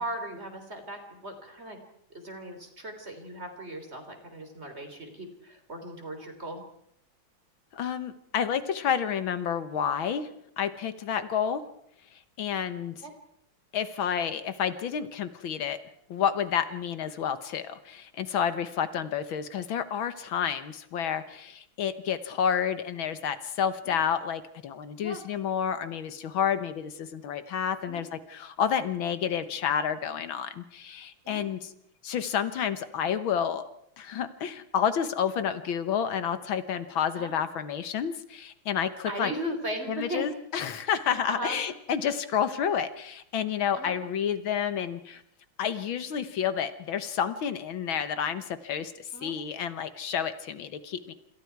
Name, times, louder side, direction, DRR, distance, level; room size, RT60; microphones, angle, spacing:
voice 1, 0.0-1.8 2.1-6.6 13.0-13.1 23.9-24.0 25.0-25.2 27.9-28.1 31.2-31.4 37.2-37.3 39.1-40.3 41.3-41.6 43.8-44.0 49.1-49.3, right 1 dB, 30° right, 5 dB, 3.9 m, -37 dB
voice 2, 7.7-10.3 10.6-11.6 12.4-12.9 13.7-15.8 16.1-31.7 32.0-33.7 34.0-39.3 39.9-45.2 45.6-51.1, left 8 dB, 75° left, 11 dB, 1.9 m, -30 dB
27.5 x 27.0 x 4.7 m, 0.73 s
omnidirectional pair, 2.2 m